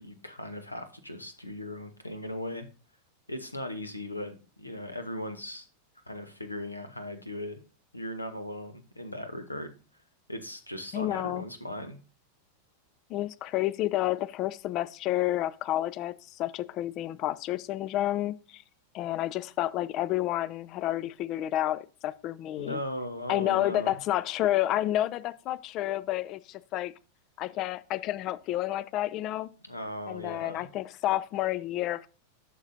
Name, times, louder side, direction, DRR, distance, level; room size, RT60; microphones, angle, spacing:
voice 1, 0.0-2.7 3.3-5.7 6.1-7.6 7.9-9.7 10.3-12.0 22.6-24.0 29.7-30.7, left 1 dB, 85° left, 1.0 m, -38 dB
voice 2, 10.9-11.4 13.1-18.6 18.9-22.8 23.3-26.9 27.4-29.5 30.1-32.1, left 14 dB, 35° left, 0.4 m, -30 dB
11.0 x 6.0 x 2.7 m
figure-of-eight pair, 90°, 0 cm